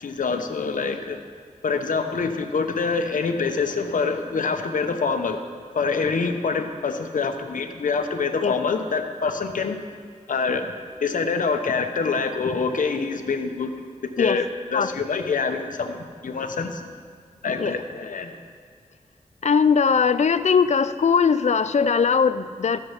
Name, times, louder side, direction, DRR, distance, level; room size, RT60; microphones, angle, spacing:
voice 1, 0.0-1.2 1.6-5.4 5.7-9.8 10.3-10.7 11.0-13.7 14.2-14.4 14.7-16.8 17.4-18.4, left 4 dB, 85° left, 6 dB, 0.8 m, -25 dB
voice 2, 19.4-22.8, left 6 dB, 60° left, 13 dB, 0.5 m, -20 dB
14.0 x 6.4 x 5.7 m, 2.2 s
wide cardioid pair, 60°, 13 cm